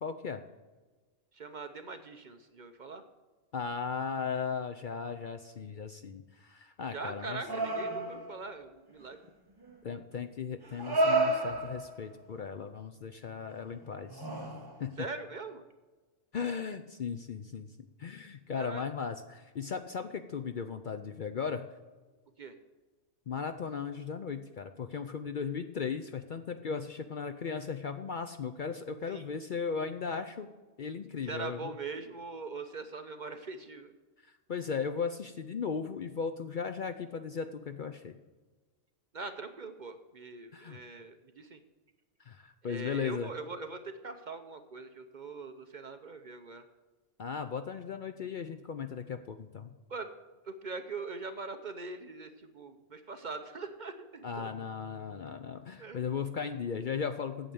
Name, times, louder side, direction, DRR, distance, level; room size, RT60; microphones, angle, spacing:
voice 1, 0.0-0.4 3.5-7.4 9.8-14.3 14.8-14.9 16.3-17.7 18.0-21.7 23.3-30.5 30.8-31.7 34.2-38.2 40.5-40.8 42.3-43.3 47.2-49.7 54.2-57.5, left 6 dB, 55° left, 8 dB, 0.6 m, -37 dB
voice 2, 1.3-3.0 6.9-9.2 15.0-15.6 18.6-18.8 22.4-22.6 29.1-29.2 31.2-33.9 39.1-41.6 42.6-46.7 49.9-50.1 50.4-54.5 55.8-56.0, right 4 dB, 45° right, 8 dB, 0.7 m, -42 dB
sound 1, 7.4-8.4 9.6-9.7 10.6-12.0 13.5-13.6 14.1-14.8, right 2 dB, 20° right, 1.2 m, -30 dB
8.9 x 7.8 x 6.9 m, 1.3 s
omnidirectional pair, 1.3 m